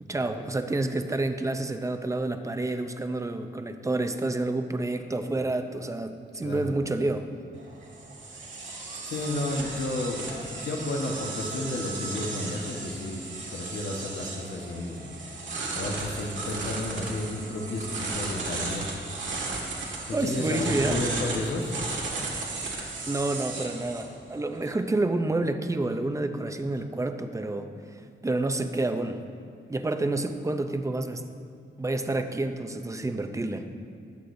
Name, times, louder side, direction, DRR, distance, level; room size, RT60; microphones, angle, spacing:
voice 1, 0.0-7.3 20.1-21.0 23.1-27.7 28.2-29.2 29.7-31.2 31.8-33.7, right 2 dB, 15° right, 7 dB, 0.5 m, -29 dB
voice 2, 6.4-6.8 9.0-13.2 13.5-15.1 15.7-18.9 19.6-21.7, left 2 dB, 70° left, 0 dB, 1.2 m, -32 dB
sound 1, 7.5-24.7, right 3 dB, 90° right, 1.7 m, -35 dB
19.0 x 8.3 x 2.6 m, 2.3 s
wide cardioid pair, 150°, 19 cm